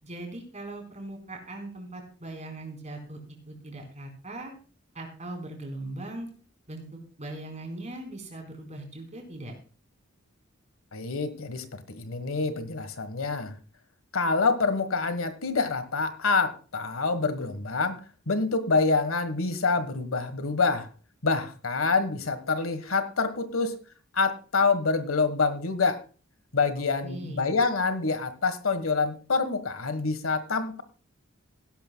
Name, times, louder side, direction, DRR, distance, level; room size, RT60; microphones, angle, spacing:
voice 1, 0.0-3.2 3.5-4.5 4.9-6.3 6.7-9.5 27.0-27.5, right 2 dB, 35° right, 3 dB, 4.3 m, -40 dB
voice 2, 10.9-13.5 14.1-18.0 18.3-20.9 21.2-23.8 24.1-26.0 26.5-30.8, left 4 dB, 85° left, 12 dB, 1.4 m, -26 dB
16.5 x 12.0 x 2.2 m, 0.38 s
head